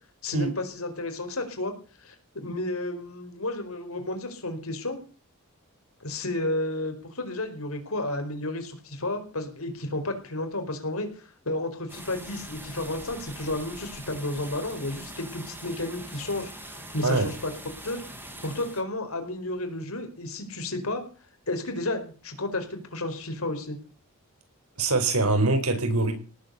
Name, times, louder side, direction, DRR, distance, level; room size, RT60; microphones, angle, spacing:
voice 1, 0.2-1.7 2.0-5.0 6.0-17.5 17.8-18.0 18.4-21.0 21.5-23.8, left 2 dB, 75° left, 6 dB, 4.8 m, -32 dB
sound 1, 11.9-18.8, right 1 dB, 10° right, 5.0 m, -42 dB
voice 2, 24.8-26.2, right 2 dB, 90° right, 8 dB, 4.7 m, -23 dB
18.5 x 8.4 x 8.3 m, 0.38 s
head